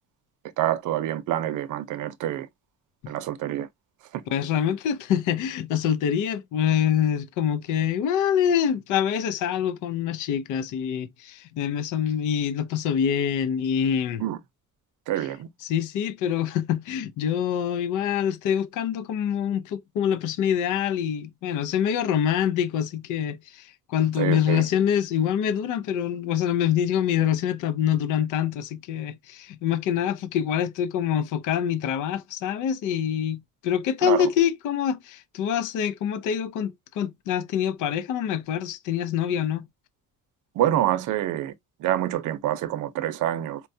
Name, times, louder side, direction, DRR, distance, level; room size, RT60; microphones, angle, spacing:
voice 1, 0.6-2.5 3.1-3.7 4.1-4.2 14.2-14.4 15.1-15.5 24.2-24.7 34.0-34.3 40.5-41.5 41.8-43.6, right 12 dB, 70° right, 0.6 m, -26 dB
voice 2, 4.3-14.2 15.6-39.6, left 9 dB, 70° left, 0.5 m, -25 dB
4.4 x 2.3 x 2.6 m
cardioid pair, 175°, 32 cm